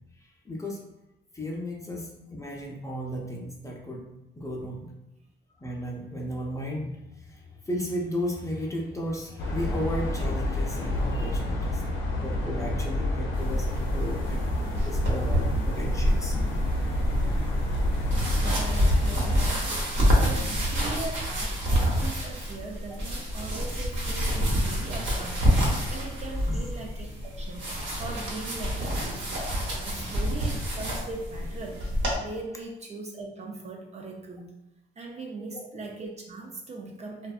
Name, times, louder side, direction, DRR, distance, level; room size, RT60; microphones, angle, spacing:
voice 1, 0.4-0.8 1.3-4.1 4.4-4.9 5.6-11.8 12.2-16.4 18.8-18.9 26.5-26.6 29.9-30.1 35.5-35.7, equal, 15° left, -1 dB, 0.5 m, -34 dB
sound 1, 9.4-19.5, left 1 dB, 85° left, 0.5 m, -29 dB
sound 2, 13.3-32.1, equal, 70° right, 0.9 m, -28 dB
voice 2, 18.4-27.7 28.0-29.3 29.7-34.5 35.0-37.3, right 3 dB, 35° right, 1 dB, 0.4 m, -40 dB
2.5 x 2.2 x 2.3 m, 0.92 s
cardioid pair, 90°, 20 cm